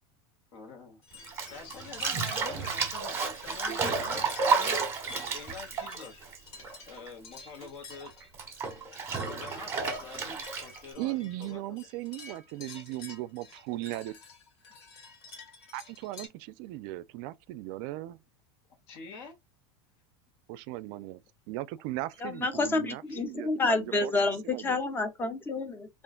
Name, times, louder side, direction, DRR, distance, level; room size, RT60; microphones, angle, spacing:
voice 1, 0.5-1.0 1.5-4.8 5.3-6.2 6.8-8.1 9.2-11.8 18.9-19.3 23.1-23.2 23.9-24.1, left 5 dB, 60° left, 1.2 m, -46 dB
sound 1, 1.0-16.3, left 4 dB, 75° left, 1.4 m, -50 dB
Bathtub (filling or washing), 1.2-7.1 7.4-10.9, right 4 dB, 20° right, 1.1 m, -31 dB
voice 2, 11.0-14.1 15.7-18.2 20.5-21.2 21.5-24.1 24.4-24.8, right 17 dB, 55° right, 0.4 m, -37 dB
voice 3, 22.2-25.9, left 3 dB, 15° left, 0.6 m, -29 dB
3.6 x 2.5 x 2.4 m
supercardioid pair, 145°, 14 cm